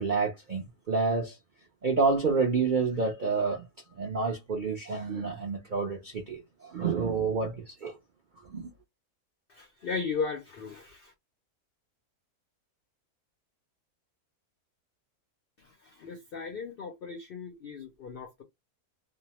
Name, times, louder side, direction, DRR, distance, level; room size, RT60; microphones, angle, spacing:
voice 1, 0.0-1.3 1.8-3.6 4.0-8.0 8.5-8.7, right 4 dB, 70° right, 0.4 m, -29 dB
voice 2, 9.5-11.1 15.8-18.4, left 5 dB, 75° left, 0.5 m, -36 dB
2.6 x 2.0 x 2.8 m
omnidirectional pair, 1.6 m